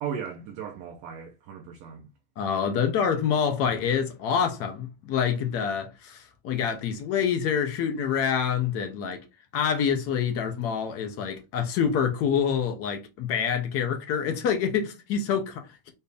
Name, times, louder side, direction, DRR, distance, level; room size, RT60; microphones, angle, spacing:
voice 1, 0.0-2.1 3.7-3.8, right 7 dB, 40° right, 0.7 m, -36 dB
voice 2, 2.4-9.2 9.5-15.9, left 7 dB, 30° left, 0.6 m, -26 dB
4.3 x 2.7 x 3.4 m
supercardioid pair, 175°, 47 cm